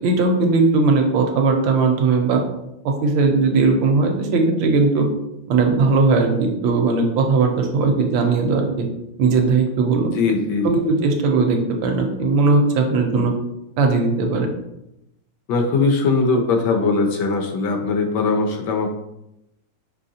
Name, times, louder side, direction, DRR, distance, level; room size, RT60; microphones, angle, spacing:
voice 1, 0.0-2.4 2.8-5.1 5.5-8.8 9.2-10.1 10.6-13.3 13.8-14.5, right 4 dB, 75° right, 3 dB, 1.4 m, -18 dB
voice 2, 10.1-10.7 13.1-13.3 15.5-18.9, left 4 dB, 70° left, 4 dB, 1.1 m, -20 dB
5.5 x 3.2 x 2.7 m, 0.86 s
omnidirectional pair, 2.2 m